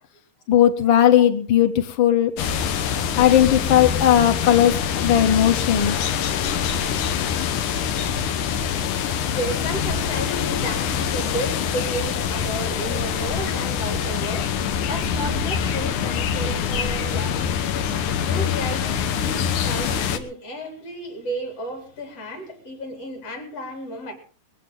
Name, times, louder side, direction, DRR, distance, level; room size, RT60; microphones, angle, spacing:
voice 1, 0.5-2.3 3.2-6.0, left 10 dB, 70° left, 1.2 m, -17 dB
sound 1, 2.4-20.2, left 7 dB, 90° left, 2.7 m, -25 dB
voice 2, 9.2-17.6 18.0-24.1, right 1 dB, 55° left, 4.5 m, -33 dB
20.5 x 15.5 x 3.8 m
omnidirectional pair, 3.4 m